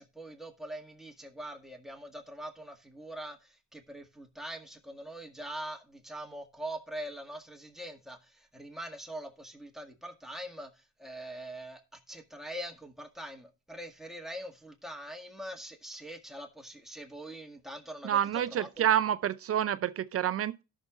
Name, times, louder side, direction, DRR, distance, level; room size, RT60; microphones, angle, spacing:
voice 1, 0.0-18.9, right 1 dB, ahead, 1.8 m, -43 dB
voice 2, 18.0-20.6, right 10 dB, 50° right, 0.5 m, -28 dB
17.0 x 6.4 x 2.4 m
cardioid pair, 90°, 30 cm